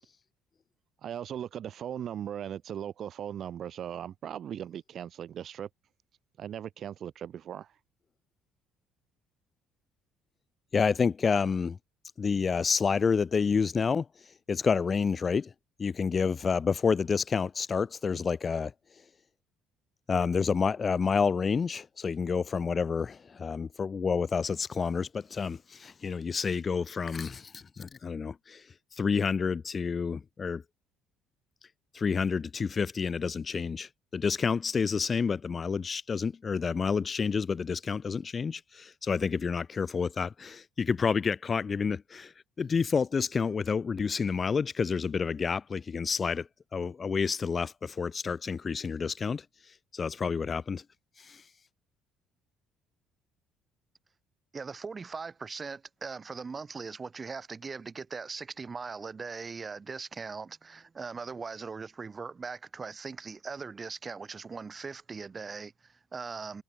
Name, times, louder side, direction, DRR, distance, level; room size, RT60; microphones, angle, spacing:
voice 1, 1.0-5.7 6.4-7.7, right 9 dB, 50° right, 2.7 m, -38 dB
voice 2, 10.7-11.8 12.2-14.1 14.5-15.5 15.8-18.7 20.1-28.6 29.0-30.6 31.9-42.3 42.6-49.4 49.9-50.8 51.2-51.4, left 5 dB, 35° left, 1.0 m, -29 dB
voice 3, 54.5-66.6, right 4 dB, 30° right, 2.3 m, -40 dB
hypercardioid pair, 55°, 0 cm